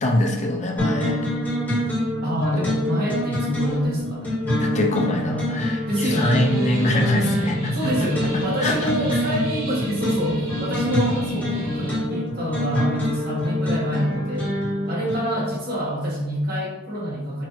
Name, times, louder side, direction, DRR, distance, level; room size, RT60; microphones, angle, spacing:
voice 1, 0.0-1.2 2.5-2.7 4.6-7.7 8.6-8.9, left 1 dB, 35° left, 2 dB, 0.5 m, -23 dB
sound 1, 0.8-15.5, left 1 dB, 10° left, 1.5 m, -26 dB
voice 2, 2.2-4.8 5.9-6.4 7.7-14.6 14.9-17.5, equal, 50° right, -4 dB, 1.4 m, -27 dB
sound 2, 6.1-11.9, right 1 dB, 75° right, 1.0 m, -32 dB
6.1 x 2.6 x 3.0 m, 1.1 s
head